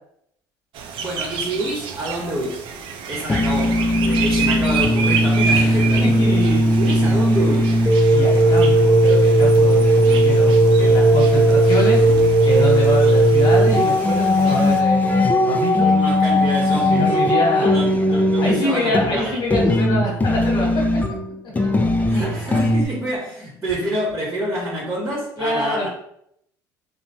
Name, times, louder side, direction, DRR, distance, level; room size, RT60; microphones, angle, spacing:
sound 1, 0.7-14.8, right 6 dB, 60° right, 0.4 m, -30 dB
voice 1, 1.0-2.6 3.1-6.4 6.8-7.7 15.7-17.1 17.6-19.4 22.1-25.9, right 1 dB, 25° right, -6 dB, 0.9 m, -27 dB
sound 2, 3.1-22.9, equal, 15° left, 0.5 m, -17 dB
voice 2, 5.5-7.2 8.1-12.0 12.4-15.9 16.7-20.8 25.4-25.9, equal, 45° left, -2 dB, 1.3 m, -25 dB
3.0 x 2.1 x 2.6 m, 0.73 s
supercardioid pair, 80°, 10 cm